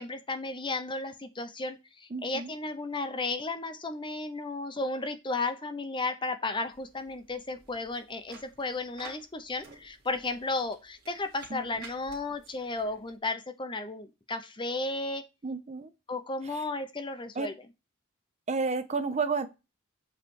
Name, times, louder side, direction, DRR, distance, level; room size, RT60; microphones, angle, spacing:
voice 1, 0.0-15.2 16.1-17.5, left 3 dB, 25° left, 8 dB, 0.7 m, -34 dB
voice 2, 2.1-2.6 11.5-11.9 15.4-15.9 16.4-16.6 17.3-17.5 18.5-19.5, right 4 dB, 30° right, 10 dB, 0.6 m, -32 dB
sound 1, 6.7-13.2, right 4 dB, 50° right, 1.9 m, -53 dB
7.7 x 3.3 x 4.5 m, 0.26 s
head